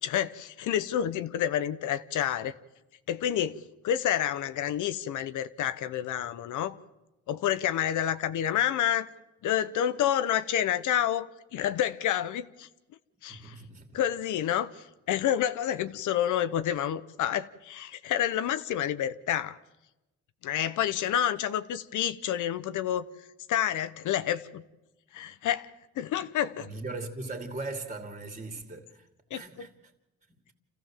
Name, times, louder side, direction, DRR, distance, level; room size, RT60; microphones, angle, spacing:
voice 1, 0.0-2.6 3.1-6.8 7.3-9.1 9.4-12.7 13.2-13.5 13.9-14.7 15.1-19.6 20.4-23.0 23.5-24.6 25.1-25.7 26.0-26.7 29.3-29.4, left 10 dB, 80° left, 1.0 m, -29 dB
voice 2, 13.3-14.0 26.6-29.9 30.3-30.5, right 3 dB, 25° right, 2.7 m, -40 dB
27.5 x 15.0 x 7.5 m
cardioid pair, 90°, 30 cm